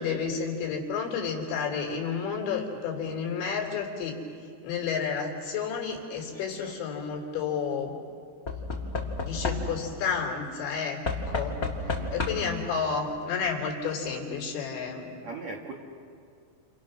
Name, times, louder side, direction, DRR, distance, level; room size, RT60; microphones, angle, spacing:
voice 1, 0.0-4.2 4.6-8.0 9.2-11.0 11.3-11.6 12.1-15.2, left 6 dB, 80° left, 1 dB, 5.7 m, -31 dB
Knock / Wood, 6.2-6.7 8.5-10.0 11.0-12.6 13.7-13.8 14.0-14.1, left 3 dB, 30° left, 1.8 m, -32 dB
voice 2, 11.8-12.2 15.2-15.7, right 4 dB, 50° right, -1 dB, 2.2 m, -39 dB
30.0 x 29.0 x 6.3 m, 2.2 s
omnidirectional pair, 5.1 m